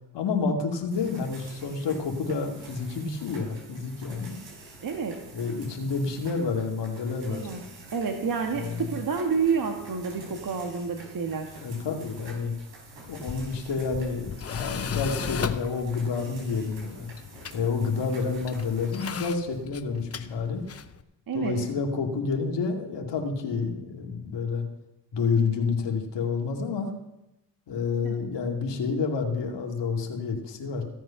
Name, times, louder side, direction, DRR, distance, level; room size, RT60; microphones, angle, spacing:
voice 1, 0.1-4.4 5.3-7.5 8.5-8.8 11.6-12.5 13.1-17.1 17.5-20.6 21.3-24.6 25.1-26.9 27.7-30.8, left 4 dB, 60° left, 2 dB, 2.4 m, -29 dB
sound 1, 0.9-19.2, right 2 dB, 65° right, 5.1 m, -47 dB
voice 2, 4.8-5.2 7.3-7.6 7.9-11.5 21.3-21.6 28.0-28.1, right 5 dB, 45° right, 4 dB, 1.5 m, -29 dB
Tools, 13.1-21.0, left 7 dB, 30° left, 0.8 m, -36 dB
16.0 x 7.7 x 5.8 m, 0.92 s
supercardioid pair, 65°, 48 cm